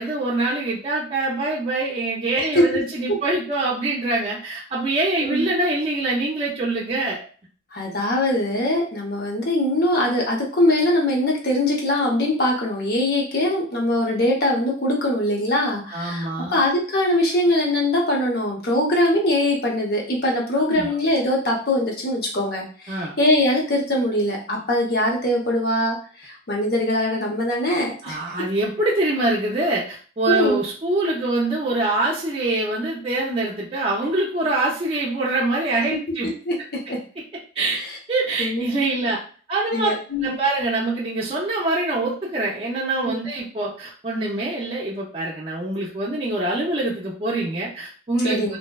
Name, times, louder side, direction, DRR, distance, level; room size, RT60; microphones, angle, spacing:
voice 1, 0.0-7.3 15.9-16.6 20.6-20.9 22.9-23.2 28.0-36.3 37.6-37.8 38.1-39.2 39.5-39.9 40.2-48.5, right 2 dB, 30° right, -5 dB, 0.4 m, -24 dB
voice 2, 7.7-28.2 30.3-30.6 36.4-37.0 37.7-38.0 38.4-38.6 39.7-40.4 43.0-43.1 48.2-48.6, left 1 dB, 55° left, -2 dB, 0.7 m, -22 dB
2.6 x 2.1 x 2.2 m, 0.41 s
head